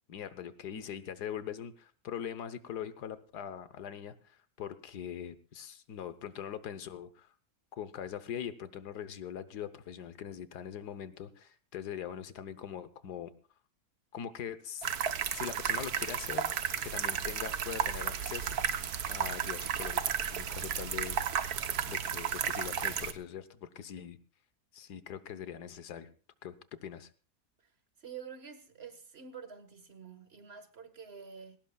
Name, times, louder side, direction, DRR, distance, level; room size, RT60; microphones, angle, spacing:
voice 1, 0.1-7.3 7.7-13.3 14.1-14.9 15.3-16.5 16.8-18.6 19.1-20.0 20.3-21.2 21.9-24.2 24.7-26.1 26.4-26.5 26.8-27.1, left 9 dB, 85° left, 1.6 m, -42 dB
sound 1, 14.8-23.1, right 8 dB, 75° right, 1.5 m, -33 dB
voice 2, 28.0-31.6, right 6 dB, 40° right, 1.7 m, -48 dB
21.5 x 18.0 x 2.3 m
omnidirectional pair, 1.7 m